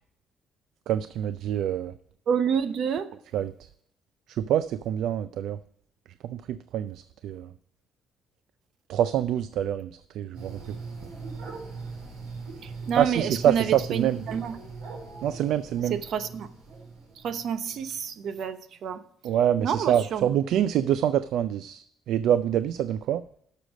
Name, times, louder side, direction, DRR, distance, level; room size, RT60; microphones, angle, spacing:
voice 1, 0.9-1.9 3.3-3.5 4.3-5.6 6.2-7.5 8.9-10.6 13.0-14.2 15.2-16.0 19.2-23.2, right 10 dB, 60° right, 13 dB, 0.3 m, -26 dB
voice 2, 2.3-3.1 12.6-14.6 15.9-16.5 17.2-19.0 19.6-20.3, right 7 dB, 45° right, 11 dB, 0.7 m, -28 dB
sound 1, 10.3-18.0, right 4 dB, 85° right, 4.1 m, -40 dB
11.5 x 6.7 x 5.0 m, 0.66 s
cardioid pair, 180°, 0 cm